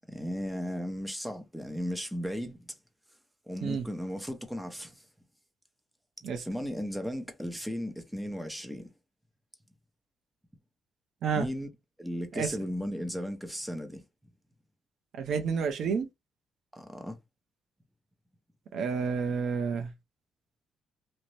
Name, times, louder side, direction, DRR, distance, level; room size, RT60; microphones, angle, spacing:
voice 1, 0.1-2.7 3.5-5.0 6.4-8.9 11.3-11.7 12.0-14.0 16.7-17.2, equal, ahead, 0.7 m, -35 dB
voice 2, 15.2-16.1 18.7-19.9, right 6 dB, 70° right, 0.5 m, -30 dB
2.6 x 2.0 x 3.1 m
cardioid pair, 90°, 0 cm